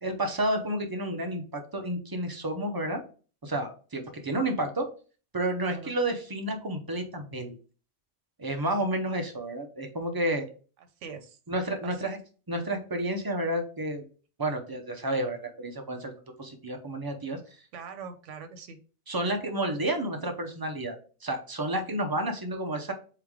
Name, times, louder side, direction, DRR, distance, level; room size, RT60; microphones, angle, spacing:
voice 1, 0.0-3.0 3.4-4.9 5.3-7.6 8.4-10.5 11.5-12.2 12.5-14.0 14.4-16.1 16.4-17.7 19.1-22.9, right 1 dB, 25° right, 4 dB, 0.5 m, -31 dB
voice 2, 11.0-11.4 11.8-12.1 17.7-18.8, right 5 dB, 85° right, 9 dB, 1.0 m, -43 dB
3.7 x 3.2 x 3.5 m, 0.37 s
omnidirectional pair, 1.2 m